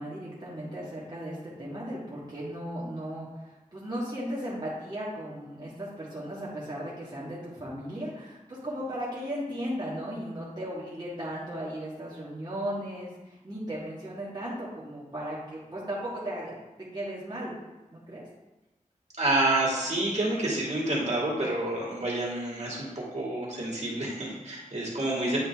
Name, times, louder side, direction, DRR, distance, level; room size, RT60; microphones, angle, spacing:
voice 1, 0.0-16.6 16.9-17.5 17.9-18.2 25.3-25.4, equal, 30° right, -7 dB, 1.6 m, -36 dB
voice 2, 19.2-25.4, right 2 dB, 55° right, -5 dB, 2.2 m, -28 dB
9.1 x 4.0 x 3.5 m, 1.1 s
wide cardioid pair, 75°, 14 cm